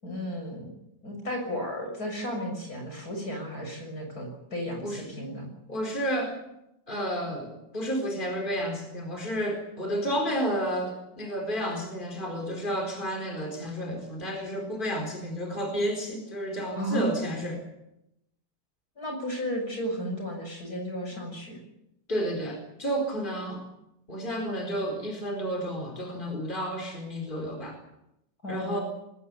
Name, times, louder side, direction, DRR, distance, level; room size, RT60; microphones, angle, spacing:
voice 1, 0.0-0.7 1.0-5.5 16.8-17.1 19.0-21.6 28.4-28.8, equal, 60° left, 3 dB, 7.3 m, -33 dB
voice 2, 5.7-6.4 6.9-17.6 22.1-23.6 24.1-27.8 28.5-28.8, equal, 30° left, 2 dB, 4.6 m, -31 dB
21.0 x 19.0 x 8.5 m, 0.84 s
omnidirectional pair, 1.8 m